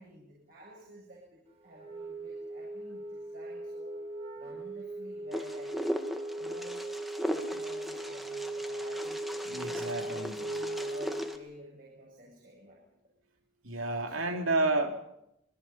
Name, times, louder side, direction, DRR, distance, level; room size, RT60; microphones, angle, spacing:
voice 1, 0.0-4.0 4.4-5.9 6.4-6.9 7.3-9.2 9.5-12.8 14.1-14.5, equal, 45° right, -3 dB, 7.4 m, -51 dB
Wind instrument woodwind instrument, 1.7-11.5, right 1 dB, 30° right, 5.5 m, -38 dB
Wind, 5.3-11.4, equal, ahead, 1.7 m, -38 dB
voice 2, 9.4-10.3 13.6-15.0, right 2 dB, 90° right, 4 dB, 3.0 m, -30 dB
26.0 x 22.0 x 5.8 m, 0.82 s
head